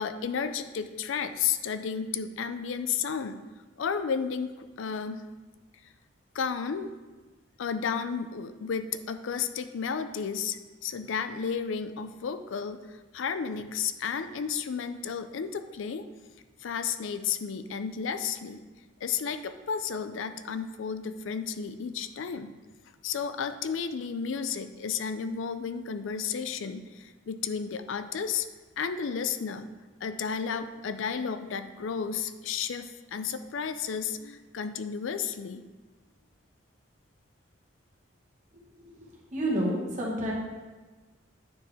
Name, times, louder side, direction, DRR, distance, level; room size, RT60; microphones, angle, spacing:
voice 1, 0.0-3.4 3.8-5.2 6.3-6.9 7.6-12.8 13.1-16.1 16.6-18.6 19.0-22.6 23.0-28.5 28.8-29.7 30.0-35.7, left 6 dB, 75° left, 10 dB, 0.4 m, -32 dB
voice 2, 39.3-40.3, right 1 dB, 40° right, -3 dB, 1.5 m, -29 dB
9.3 x 4.6 x 3.4 m, 1.3 s
head